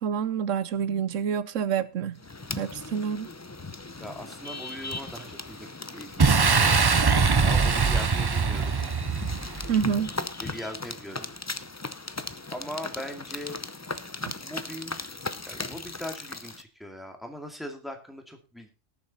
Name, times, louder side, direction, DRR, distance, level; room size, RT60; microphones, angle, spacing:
voice 1, 0.0-2.2 2.6-3.3 9.7-10.1, right 7 dB, 80° right, 1.2 m, -27 dB
sound 1, 2.2-16.6, left 3 dB, 20° left, 0.5 m, -38 dB
voice 2, 4.0-6.8 7.4-8.8 10.4-11.3 12.5-13.7 14.4-15.1 15.5-18.7, equal, ahead, 2.3 m, -40 dB
Boom, 6.2-9.8, right 5 dB, 40° right, 0.3 m, -22 dB
18.5 x 7.3 x 4.1 m
omnidirectional pair, 1.3 m